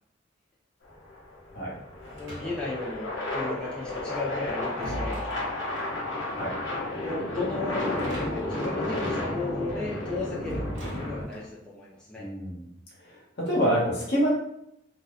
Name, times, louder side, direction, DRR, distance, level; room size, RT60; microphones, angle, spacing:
sound 1, 0.8-11.3, left 2 dB, 80° left, 0.9 m, -32 dB
sound 2, 2.0-2.9 4.2-6.0 7.8-8.7 8.9-9.0 10.5-11.6, equal, 75° right, 0.8 m, -39 dB
voice 1, 2.1-5.6 7.0-10.6 10.9-12.3, left 2 dB, 5° left, -6 dB, 0.4 m, -35 dB
voice 2, 6.4-6.7 12.2-12.7 13.0-14.3, equal, 60° left, -4 dB, 1.2 m, -27 dB
2.7 x 2.1 x 3.8 m, 0.76 s
head